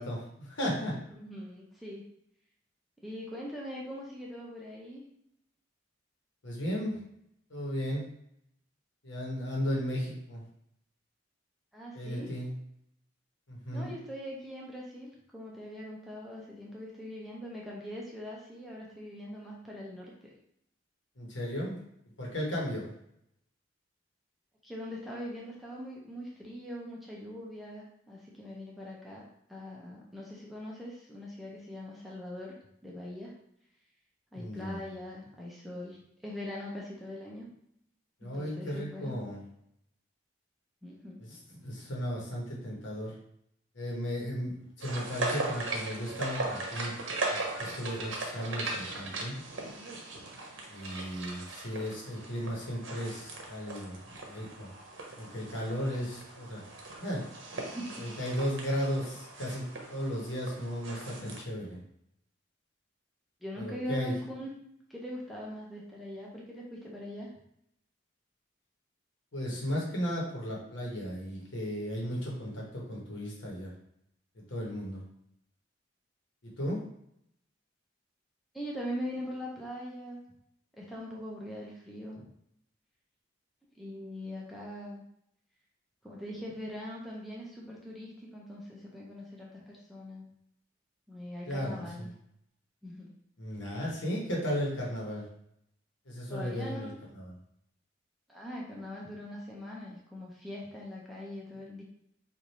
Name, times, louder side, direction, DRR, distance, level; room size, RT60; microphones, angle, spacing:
voice 1, 0.0-1.0 6.4-7.0 7.5-8.1 9.0-10.4 11.9-12.5 13.5-13.9 21.2-21.8 22.2-22.9 34.3-34.8 38.2-39.4 41.5-43.2 43.7-46.9 47.3-49.4 50.7-54.7 55.2-56.6 57.0-57.2 58.0-59.6 59.9-61.8 63.6-64.1 69.3-73.7 74.5-75.0 76.4-76.8 91.4-92.1 93.4-95.2 96.1-97.3, equal, 75° left, -3 dB, 1.1 m, -35 dB
voice 2, 1.1-2.0 3.0-5.0 11.7-12.4 13.7-20.3 24.6-32.6 32.8-33.3 34.3-37.5 38.3-39.1 40.8-41.2 57.7-58.0 61.1-61.4 63.4-64.6 64.9-67.3 78.5-80.2 80.7-82.3 83.7-85.0 86.0-90.3 91.1-92.1 92.8-93.1 96.3-97.0 98.3-101.8, left 1 dB, ahead, -4 dB, 0.6 m, -42 dB
sound 1, 44.8-61.4, right 2 dB, 80° right, 0.7 m, -39 dB
3.3 x 2.5 x 4.1 m, 0.75 s
head